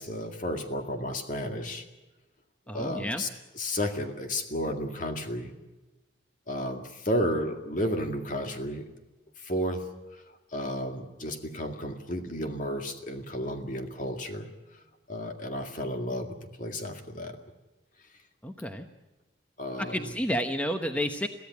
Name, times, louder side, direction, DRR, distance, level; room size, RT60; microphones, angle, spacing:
voice 1, 0.0-1.9 2.7-3.3 3.5-5.5 6.5-8.9 9.4-9.8 10.1-14.5 15.1-17.4 19.6-20.1, equal, 45° left, 5 dB, 2.1 m, -32 dB
voice 2, 2.7-3.2 18.4-18.9 19.8-21.3, equal, 5° left, 6 dB, 0.9 m, -30 dB
23.0 x 15.5 x 9.5 m, 1.1 s
head